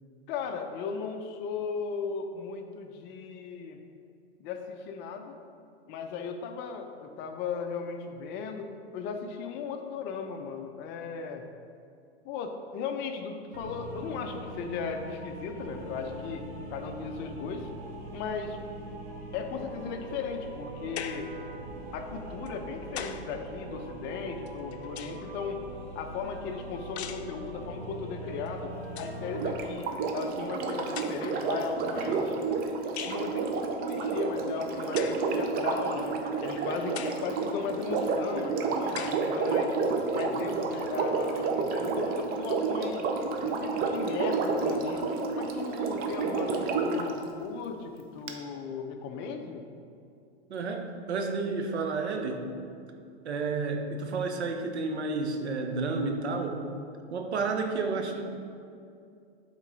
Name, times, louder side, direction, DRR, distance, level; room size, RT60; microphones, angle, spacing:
voice 1, 0.3-3.8 4.4-5.4 5.9-11.4 12.2-16.4 16.7-17.7 18.1-18.6 19.3-21.3 21.9-25.6 25.9-32.4 33.0-33.5 33.8-39.7 40.1-43.1 43.4-45.1 45.4-49.6, left 5 dB, 35° left, 5 dB, 0.6 m, -36 dB
sound 1, 13.5-29.5, right 1 dB, 65° right, 1.6 m, -41 dB
sound 2, 21.0-21.4 22.5-23.3 24.5-25.4 27.0-27.3 28.5-28.6 28.8-29.2 30.2-30.3 30.9-31.5 33.0-33.3 34.9-35.3 36.0-36.1 36.9-37.3 38.0-38.1 38.9-39.3, left 9 dB, 80° left, 0.5 m, -40 dB
Sink (filling or washing), 29.3-47.1 48.3-48.4, right 4 dB, 30° right, 0.6 m, -30 dB
voice 2, 50.5-52.4 53.2-56.7 57.1-58.2, right 3 dB, 85° right, 4 dB, 0.9 m, -31 dB
8.1 x 3.8 x 3.9 m, 2.4 s
hypercardioid pair, 115°, 32 cm